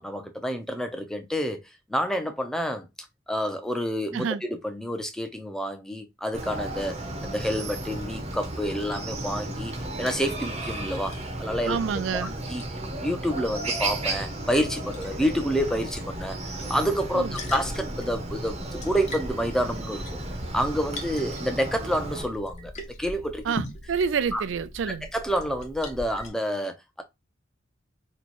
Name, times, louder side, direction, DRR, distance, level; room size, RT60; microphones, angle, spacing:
voice 1, 0.0-1.6 1.9-2.9 3.3-7.0 7.2-11.8 12.1-12.6 13.0-20.2 20.5-22.7 23.0-23.4 24.3-24.4 25.1-27.0, equal, 5° left, 0.6 m, -28 dB
Chicken rooster, 6.3-22.2, right 2 dB, 35° right, 0.7 m, -34 dB
Liquid, 7.3-26.3, left 1 dB, 40° left, 0.9 m, -43 dB
voice 2, 11.6-12.3 17.1-17.4 23.5-25.1, right 6 dB, 70° right, 0.4 m, -28 dB
3.1 x 2.2 x 4.1 m
head